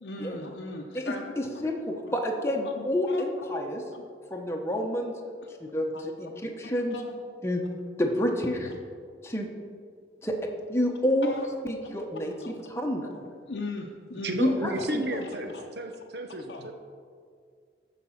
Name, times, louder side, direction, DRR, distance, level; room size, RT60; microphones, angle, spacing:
voice 1, 0.0-1.7 2.1-2.2 2.6-3.2 3.9-4.0 5.9-6.0 6.6-7.2 8.6-8.8 11.2-11.5 12.4-12.6 13.1-14.8 15.1-15.2 15.5-15.6 16.5-16.7, left 2 dB, 80° left, 0 dB, 0.7 m, -39 dB
voice 2, 0.9-3.8 4.3-5.1 5.6-5.9 6.2-7.0 7.4-7.6 8.0-8.7 9.2-9.5 10.2-10.4 10.7-11.3 11.6-13.1 14.4-15.0, left 1 dB, 15° left, 1 dB, 0.9 m, -28 dB
voice 3, 14.2-16.7, right 1 dB, 70° right, 5 dB, 1.0 m, -33 dB
13.5 x 5.0 x 5.8 m, 2.1 s
head